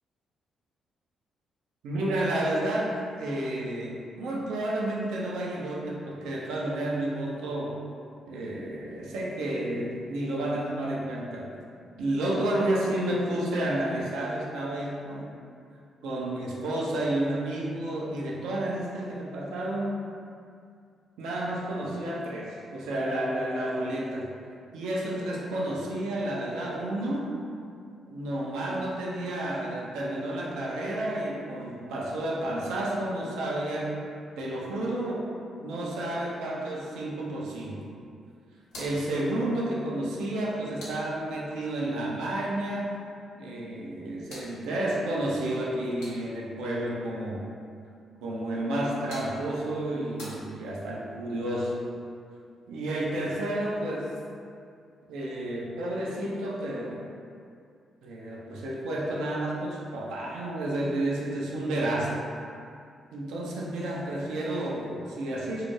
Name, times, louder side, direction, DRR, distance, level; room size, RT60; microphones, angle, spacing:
voice 1, 1.8-7.8 8.3-11.5 12.0-15.3 16.0-20.0 21.2-24.3 24.7-27.3 28.0-34.0 34.4-35.3 35.6-37.8 38.8-42.9 43.4-47.4 48.2-51.8 52.7-54.1 55.1-57.0 58.0-62.2 63.1-65.7, right 1 dB, 70° right, -4 dB, 0.4 m, -31 dB
sound 1, 38.6-41.7 43.7-46.6 48.6-51.1, left 1 dB, 70° left, 0.6 m, -49 dB
2.2 x 2.0 x 3.0 m, 2.3 s
hypercardioid pair, 40°, 0 cm